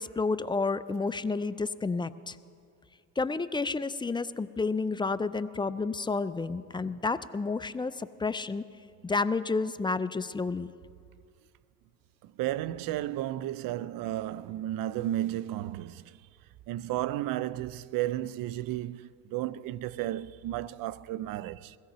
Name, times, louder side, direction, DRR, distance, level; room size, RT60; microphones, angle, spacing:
voice 1, 0.0-2.4 3.2-8.6 9.0-10.7, left 4 dB, 15° left, 0.4 m, -30 dB
voice 2, 12.2-16.2 16.7-21.8, right 14 dB, 65° right, 0.6 m, -33 dB
22.0 x 16.0 x 3.1 m
supercardioid pair, 80°, 37 cm